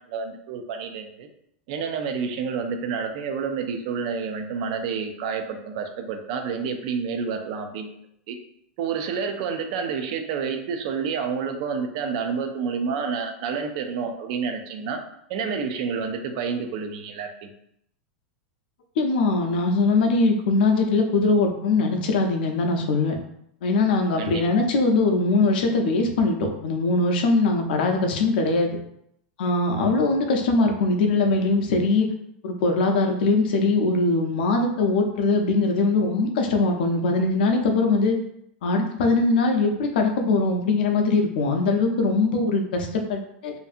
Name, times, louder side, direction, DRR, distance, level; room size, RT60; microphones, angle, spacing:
voice 1, 0.1-1.3 1.7-7.9 8.3-8.4 8.8-15.0 15.3-17.5 24.2-24.4, right 6 dB, 45° right, 6 dB, 0.3 m, -29 dB
voice 2, 19.0-23.2 23.6-28.7 29.4-32.1 32.4-38.2 38.6-43.5, left 3 dB, 65° left, 3 dB, 0.5 m, -21 dB
2.6 x 2.5 x 2.4 m, 0.74 s
supercardioid pair, 170°, 6 cm